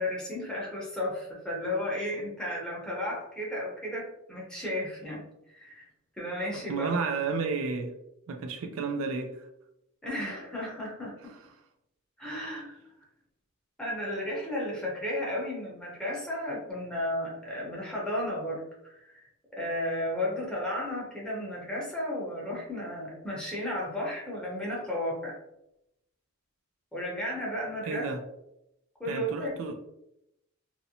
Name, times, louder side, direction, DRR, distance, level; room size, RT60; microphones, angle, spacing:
voice 1, 0.0-5.9 6.2-6.9 10.0-11.3 12.2-12.8 13.8-25.4 26.9-28.1 29.0-29.5, left 1 dB, 5° left, 0.7 m, -34 dB
voice 2, 6.7-7.9 8.3-9.5 27.8-28.2 29.1-29.9, right 4 dB, 75° right, 0.3 m, -32 dB
2.5 x 2.1 x 2.7 m
head